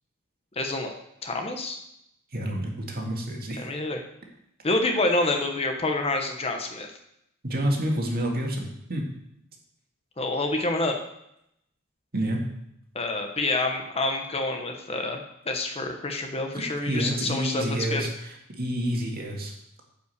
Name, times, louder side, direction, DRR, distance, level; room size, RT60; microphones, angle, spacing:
voice 1, 0.6-1.0 1.2-1.8 3.6-4.0 4.6-6.9 10.2-11.0 12.9-15.2 15.5-18.0, left 2 dB, 30° left, 4 dB, 1.0 m, -27 dB
voice 2, 2.3-3.7 7.4-9.1 12.1-12.4 16.5-19.5, right 1 dB, 45° right, 1 dB, 2.0 m, -29 dB
9.8 x 5.6 x 6.7 m, 0.78 s
head